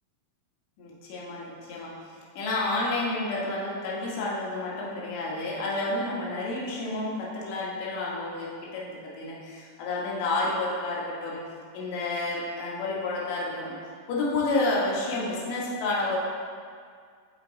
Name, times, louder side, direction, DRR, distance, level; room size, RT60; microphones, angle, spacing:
voice 1, 0.8-2.0 2.3-11.4 11.7-13.7 14.1-16.2, left 2 dB, 45° left, -5 dB, 1.8 m, -30 dB
8.7 x 5.0 x 3.0 m, 2.1 s
figure-of-eight pair, 90°, 0 cm